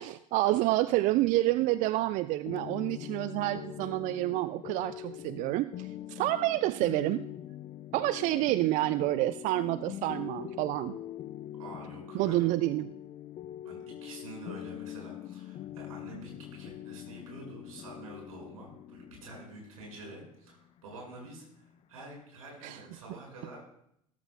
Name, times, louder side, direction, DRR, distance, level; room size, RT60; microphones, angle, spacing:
voice 1, 0.0-7.3 7.9-11.0 12.1-12.9 22.6-22.8, right 16 dB, 45° right, 15 dB, 0.4 m, -28 dB
sound 1, 2.5-22.0, left 12 dB, 35° left, 0.5 m, -43 dB
voice 2, 11.6-12.5 13.6-23.6, right 2 dB, 75° right, -1 dB, 5.5 m, -48 dB
17.5 x 13.5 x 2.2 m, 0.72 s
figure-of-eight pair, 70°, 18 cm